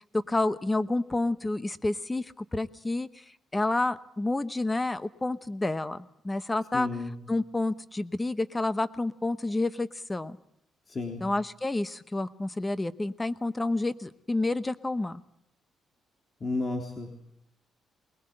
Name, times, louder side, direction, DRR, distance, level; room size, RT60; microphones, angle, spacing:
voice 1, 0.1-3.1 3.5-6.9 7.3-10.4 11.2-15.2, left 2 dB, 15° left, 14 dB, 0.9 m, -29 dB
voice 2, 6.7-7.2 10.9-11.2 16.4-17.2, left 2 dB, 35° left, 2 dB, 3.3 m, -32 dB
21.5 x 19.5 x 7.7 m, 0.78 s
cardioid pair, 90°, 0 cm